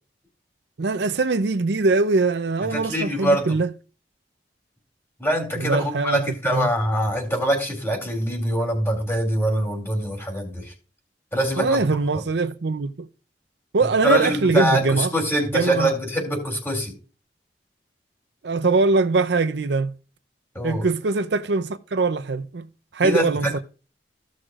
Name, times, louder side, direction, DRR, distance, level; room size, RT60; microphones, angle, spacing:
voice 1, 0.8-3.7 5.6-6.2 6.5-6.7 11.6-13.1 13.7-15.1 15.5-15.9 18.4-19.9 20.6-22.7 22.9-23.6, right 3 dB, 70° right, 0.6 m, -22 dB
voice 2, 2.7-3.6 5.2-10.7 11.3-11.8 12.1-12.2 14.0-16.9 20.5-20.8 23.0-23.5, equal, 15° left, 3.1 m, -24 dB
15.0 x 6.3 x 2.4 m
head